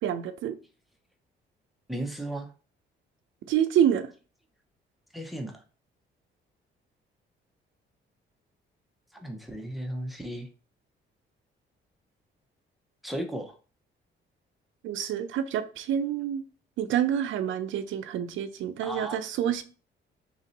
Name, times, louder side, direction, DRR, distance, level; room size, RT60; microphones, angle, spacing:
voice 1, 0.0-0.6 3.5-4.1 14.8-16.4 16.8-19.6, right 9 dB, 75° right, 0.5 m, -27 dB
voice 2, 1.9-2.5 5.1-5.6 9.1-10.5 13.0-13.5 18.8-19.2, right 1 dB, ahead, 0.7 m, -35 dB
3.2 x 2.6 x 3.9 m
cardioid pair, 90°, 20 cm